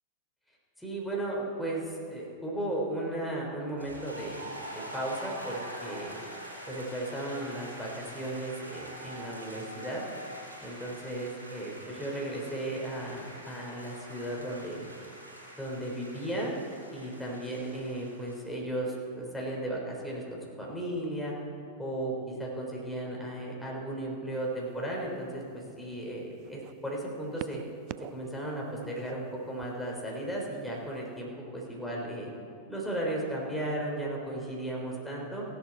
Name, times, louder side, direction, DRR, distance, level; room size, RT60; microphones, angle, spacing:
voice 1, 0.8-4.6 4.9-6.2 6.7-10.0 10.6-14.9 15.6-16.5 16.9-21.3 21.8-27.6 28.1-32.3 32.7-35.4, right 1 dB, 5° left, -3 dB, 3.4 m, -35 dB
sound 1, 3.8-18.4, right 1 dB, 80° right, 4.0 m, -45 dB
sound 2, 24.3-24.6 25.4-26.7 27.4-28.3 28.6-29.9 30.8-30.9, right 16 dB, 40° right, 0.3 m, -45 dB
16.0 x 11.5 x 4.4 m, 2.3 s
figure-of-eight pair, 90°, 0 cm